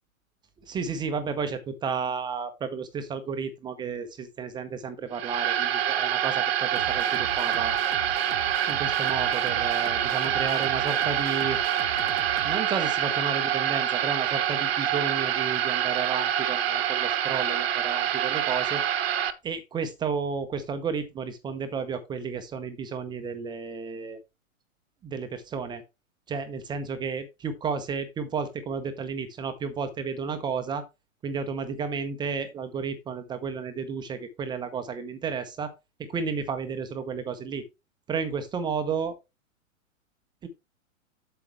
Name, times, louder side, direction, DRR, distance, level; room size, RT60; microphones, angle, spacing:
voice 1, 0.7-7.8 8.7-11.6 12.4-18.8 19.4-24.2 25.0-25.8 26.3-30.9 31.2-35.7 36.0-37.6 38.1-39.2 40.4-40.5, right 5 dB, 10° right, 8 dB, 0.7 m, -32 dB
sound 1, 5.1-19.3, right 10 dB, 45° right, 1.0 m, -26 dB
sound 2, 6.8-12.6, right 7 dB, 70° right, 1.0 m, -38 dB
8.2 x 6.7 x 3.3 m, 0.24 s
figure-of-eight pair, 115°, 41 cm